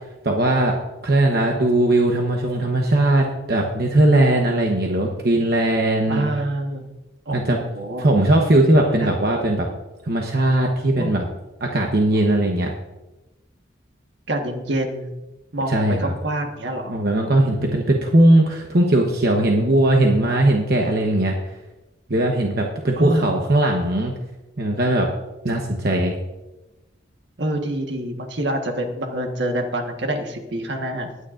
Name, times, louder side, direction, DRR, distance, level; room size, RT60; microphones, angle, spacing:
voice 1, 0.2-0.7 1.0-6.2 7.3-7.6 8.0-9.7 10.1-11.2 11.6-12.7 15.7-16.1 16.9-21.4 22.1-24.1 24.6-25.1 25.4-26.1, right 1 dB, 55° right, 1 dB, 1.0 m, -19 dB
voice 2, 6.1-6.9 7.3-8.1 8.8-9.1 11.0-11.1 14.3-15.1 15.5-17.0 23.0-23.5 27.4-31.1, right 1 dB, 70° right, 4 dB, 1.4 m, -26 dB
19.5 x 9.5 x 2.6 m, 1.0 s
head